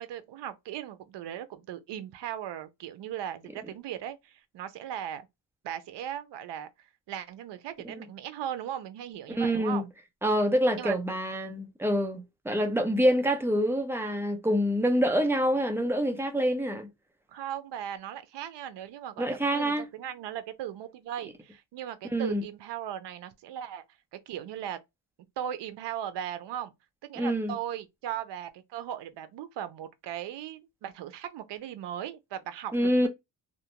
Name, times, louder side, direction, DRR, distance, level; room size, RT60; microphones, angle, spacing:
voice 1, 0.0-5.3 5.6-6.7 7.1-9.9 10.8-11.0 17.3-23.8 24.1-24.8 25.4-26.7 27.0-33.1, right 10 dB, 80° right, 0.6 m, -38 dB
voice 2, 9.4-9.9 10.2-16.9 19.2-19.9 22.1-22.4 27.2-27.5 32.7-33.1, equal, 5° right, 0.5 m, -26 dB
2.5 x 2.1 x 2.8 m
cardioid pair, 125°, 41 cm